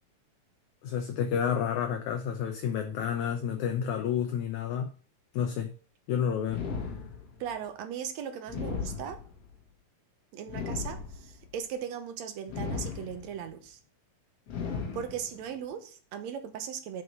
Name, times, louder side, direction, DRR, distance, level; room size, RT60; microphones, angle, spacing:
voice 1, 0.8-4.9 5.3-5.7 6.1-6.6, left 8 dB, 70° left, 5 dB, 2.0 m, -30 dB
sound 1, 6.5-7.5 8.5-9.5 10.5-11.5 12.5-13.5 14.5-15.5, left 5 dB, 50° left, 2.2 m, -36 dB
voice 2, 7.4-9.2 10.3-13.8 14.9-17.0, right 8 dB, 65° right, 7 dB, 1.9 m, -38 dB
6.2 x 5.6 x 6.3 m, 0.39 s
omnidirectional pair, 3.9 m